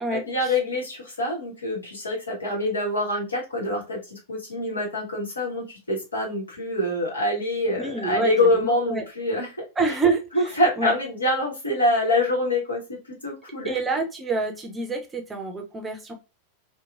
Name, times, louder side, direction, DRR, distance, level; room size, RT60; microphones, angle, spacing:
voice 1, 0.1-9.5 10.3-13.0 13.2-13.8, left 1 dB, 75° left, -2 dB, 1.1 m, -25 dB
voice 2, 7.8-8.5 8.9-9.0 9.8-10.9 13.6-16.1, right 3 dB, 15° right, 4 dB, 0.6 m, -27 dB
2.9 x 2.2 x 2.4 m, 0.28 s
figure-of-eight pair, 90°, 0 cm